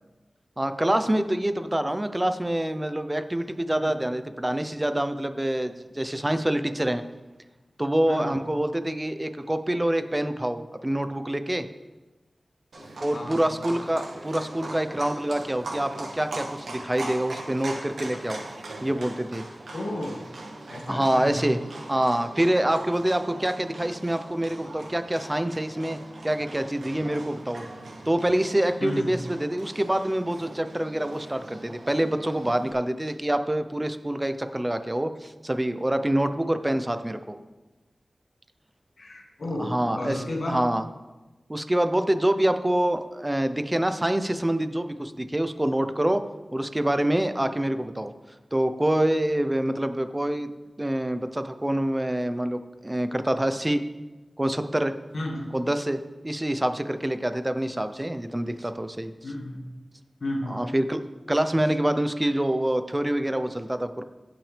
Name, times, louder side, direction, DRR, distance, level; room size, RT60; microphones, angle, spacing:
voice 1, 0.6-7.0 7.8-11.7 13.0-18.4 18.8-19.4 20.9-21.6 21.9-27.6 28.1-37.4 39.6-40.2 40.5-40.9 41.5-46.2 46.5-48.1 48.5-50.5 50.8-53.8 54.4-54.9 55.5-59.1 60.5-61.0 61.3-64.0, right 1 dB, 20° right, 9 dB, 0.7 m, -26 dB
voice 2, 8.1-8.4 12.8-13.6 19.7-20.2 20.7-21.5 28.8-29.2 39.0-40.6 55.1-55.6 59.2-59.7 60.2-60.6, left 1 dB, 70° left, -1 dB, 1.9 m, -33 dB
Livestock farm animals working animals, 12.7-32.7, right 2 dB, 90° right, 1.5 m, -40 dB
16.0 x 6.1 x 3.4 m, 1.1 s
cardioid pair, 50°, 0 cm